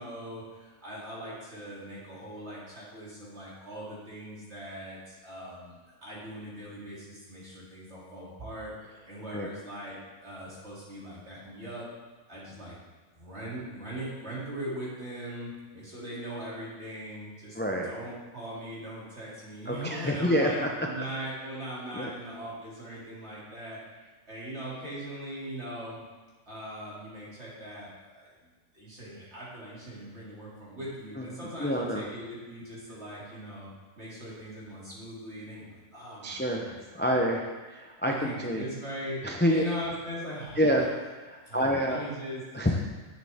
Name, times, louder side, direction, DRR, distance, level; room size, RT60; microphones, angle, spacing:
voice 1, 0.0-11.9 12.3-12.8 13.1-17.6 17.8-26.0 26.5-33.7 34.0-37.2 38.1-40.9 41.4-42.4, equal, 50° right, -7 dB, 3.3 m, -40 dB
voice 2, 17.5-17.9 19.7-20.7 22.0-22.1 31.2-32.0 36.2-38.6 39.2-39.6 40.6-40.9 41.2-42.0 42.5-42.9, equal, 10° left, 0 dB, 0.5 m, -28 dB
10.5 x 8.2 x 3.6 m, 1.3 s
omnidirectional pair, 1.5 m